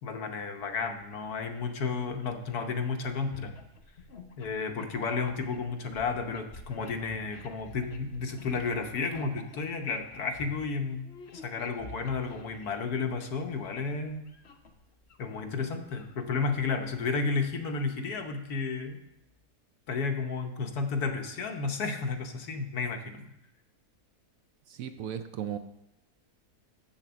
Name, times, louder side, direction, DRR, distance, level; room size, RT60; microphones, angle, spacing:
voice 1, 0.0-3.6 4.4-11.1 11.3-14.2 15.2-19.0 19.9-23.3, left 4 dB, 75° left, 5 dB, 1.4 m, -32 dB
sound 1, 0.6-1.0 2.6-2.7 3.0-13.4 13.8-15.2 15.6-17.6, left 2 dB, 45° left, 1.0 m, -49 dB
voice 2, 24.7-25.6, right 9 dB, 70° right, 9 dB, 0.9 m, -36 dB
7.4 x 7.3 x 6.8 m, 0.86 s
omnidirectional pair, 1.7 m